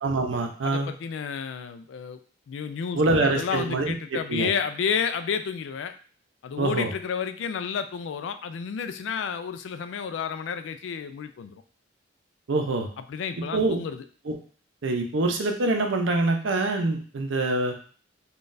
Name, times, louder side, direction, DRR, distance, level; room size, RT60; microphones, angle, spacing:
voice 1, 0.0-0.9 2.9-4.5 6.6-6.9 12.5-12.9 13.5-13.8 14.3-14.4 14.8-17.7, right 2 dB, 80° right, 3 dB, 0.6 m, -25 dB
voice 2, 0.6-2.2 2.5-5.9 6.4-11.6 13.1-14.0, left 6 dB, 75° left, 9 dB, 0.3 m, -31 dB
3.8 x 2.3 x 2.5 m, 0.42 s
head